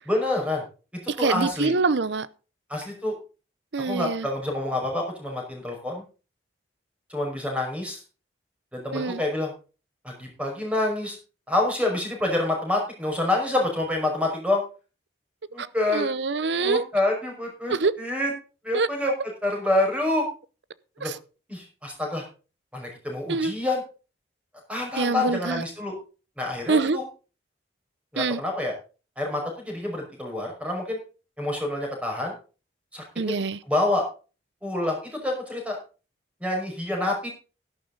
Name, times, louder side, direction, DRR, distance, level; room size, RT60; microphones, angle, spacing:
voice 1, 0.1-0.6 1.2-1.8 2.7-3.1 3.8-6.0 7.1-8.0 8.7-9.5 10.0-11.2 11.5-14.6 15.5-16.1 16.6-18.3 18.6-19.1 19.4-20.3 21.0-21.1 21.5-22.2 22.7-23.8 24.7-25.9 26.4-27.1 28.1-28.7 29.2-31.0 31.4-32.3 32.9-33.3 33.6-34.0 34.6-35.8 36.4-37.3, left 2 dB, 5° right, 5.3 m, -27 dB
voice 2, 1.1-2.3 3.7-4.3 8.9-9.2 15.6-15.7 15.9-16.8 17.7-17.9 18.7-18.9 21.0-21.1 23.3-23.5 25.0-25.6 26.7-27.0 28.2-28.4 33.2-33.6, right 4 dB, 80° right, 0.7 m, -25 dB
12.5 x 11.5 x 3.9 m
head